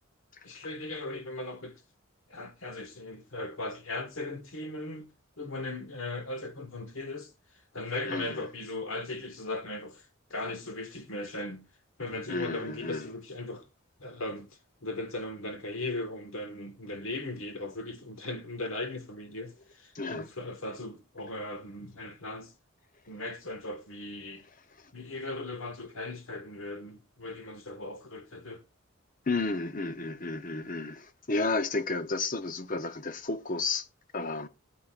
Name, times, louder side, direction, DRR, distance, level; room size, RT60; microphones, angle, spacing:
voice 1, 0.4-1.8 2.3-5.1 5.4-7.3 7.7-11.6 12.0-13.7 14.0-14.5 14.8-22.5 23.1-24.4 24.9-28.6, left 2 dB, 75° left, 1.6 m, -38 dB
voice 2, 8.0-8.5 12.3-13.1 19.9-20.3 29.3-33.9 34.1-34.5, left 3 dB, 40° left, 0.8 m, -32 dB
19.5 x 8.8 x 2.5 m
head